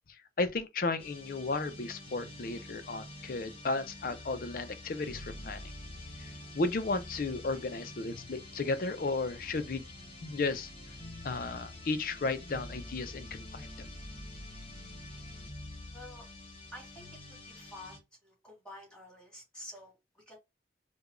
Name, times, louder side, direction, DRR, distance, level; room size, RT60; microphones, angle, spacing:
voice 1, 0.4-5.6 6.2-6.3 6.5-9.8 10.2-10.7 11.2-13.9, left 3 dB, 50° left, 0.5 m, -34 dB
sound 1, 1.0-18.0, left 1 dB, 30° left, 1.0 m, -47 dB
voice 2, 15.9-16.2 16.7-17.1 17.5-20.4, left 1 dB, 5° left, 1.8 m, -49 dB
4.7 x 2.3 x 2.5 m
head